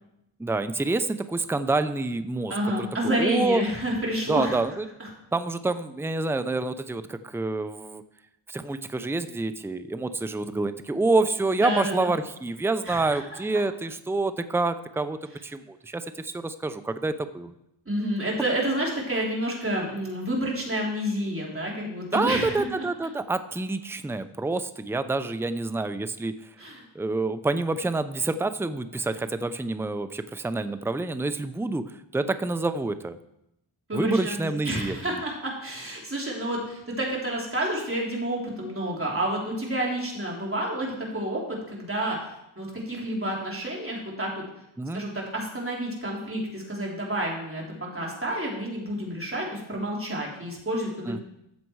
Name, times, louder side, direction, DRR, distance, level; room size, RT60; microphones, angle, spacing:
voice 1, 0.4-3.6 4.3-4.8 5.3-8.0 8.5-17.5 22.1-26.3 26.9-33.2 33.9-35.1 44.8-45.0 51.1-51.2, right 3 dB, 5° right, 11 dB, 0.6 m, -27 dB
voice 2, 2.5-4.6 5.0-5.1 11.6-12.1 12.8-13.2 17.9-22.7 26.6-26.8 33.9-42.2 42.6-44.4 44.9-47.6 47.9-51.2, right 1 dB, 25° right, -3 dB, 3.8 m, -29 dB
13.5 x 7.5 x 4.7 m, 0.83 s
wide cardioid pair, 75°, 50 cm